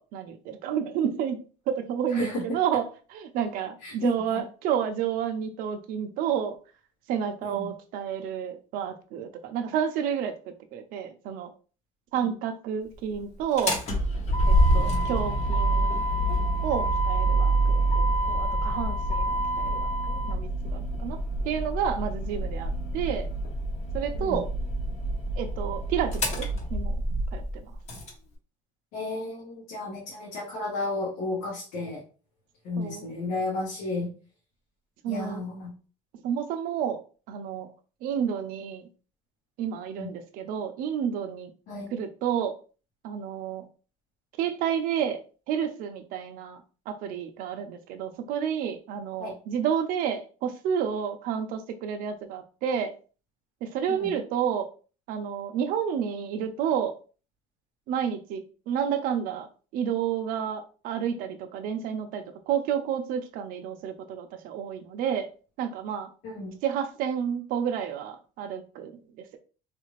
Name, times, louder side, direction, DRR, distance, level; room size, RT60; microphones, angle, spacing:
voice 1, 0.1-1.4 1.7-6.6 7.1-10.4 10.7-11.5 12.1-13.8 14.7-16.0 16.6-23.3 23.9-24.5 25.4-26.9 27.3-27.7 32.8-33.2 35.0-35.4 36.2-37.0 37.3-37.7 38.0-38.8 39.6-41.5 41.9-42.5 43.0-43.6 44.4-45.2 45.5-46.6 46.9-52.9 53.6-54.7 55.1-56.9 57.9-59.5 59.7-65.3 65.6-66.1 66.6-68.9, right 8 dB, 70° right, 6 dB, 0.5 m, -30 dB
voice 2, 3.8-4.2 7.4-7.7 12.1-12.3 14.8-15.1 24.2-24.4 28.9-32.0 32.6-34.1 35.1-35.7 40.0-40.1 41.7-41.9 49.2-49.3 53.9-54.1 66.2-66.6, left 2 dB, 85° left, -4 dB, 1.2 m, -33 dB
Motor vehicle (road), 13.4-28.1, right 1 dB, 50° left, 1.0 m, -26 dB
3.3 x 2.5 x 3.1 m, 0.36 s
cardioid pair, 125°, 15 cm